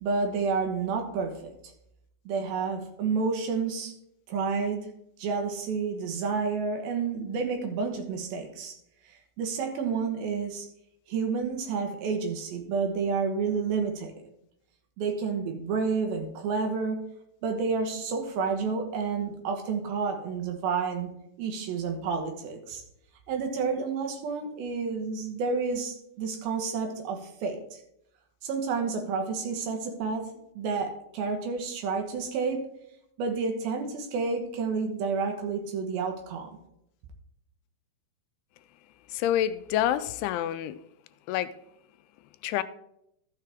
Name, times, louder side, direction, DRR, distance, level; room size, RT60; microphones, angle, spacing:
voice 1, 0.0-1.5 2.3-3.9 4.3-4.9 5.2-8.7 9.4-10.7 11.1-14.1 15.0-17.0 17.4-21.1 21.4-22.8 23.3-27.8 28.4-32.7 33.2-36.5, right 5 dB, 70° right, 2.8 m, -30 dB
voice 2, 39.1-40.8 41.3-41.5 42.4-42.6, left 11 dB, 85° left, 2.5 m, -27 dB
13.0 x 6.7 x 3.5 m
omnidirectional pair, 4.7 m